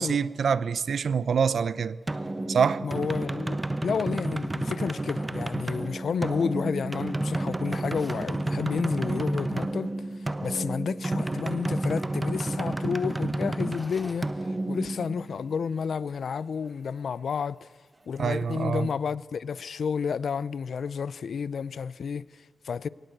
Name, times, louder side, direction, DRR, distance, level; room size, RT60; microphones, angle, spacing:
voice 1, 0.0-2.0 2.5-2.8 18.2-18.9, right 6 dB, 70° right, 0.8 m, -25 dB
sound 1, 2.1-15.6, right 2 dB, 20° right, 1.0 m, -31 dB
voice 2, 2.8-17.7 18.1-22.9, left 6 dB, 70° left, 0.6 m, -31 dB
sound 2, 7.7-8.3 13.6-14.5, left 1 dB, 10° left, 2.2 m, -47 dB
22.0 x 18.5 x 8.0 m
wide cardioid pair, 100°, 0 cm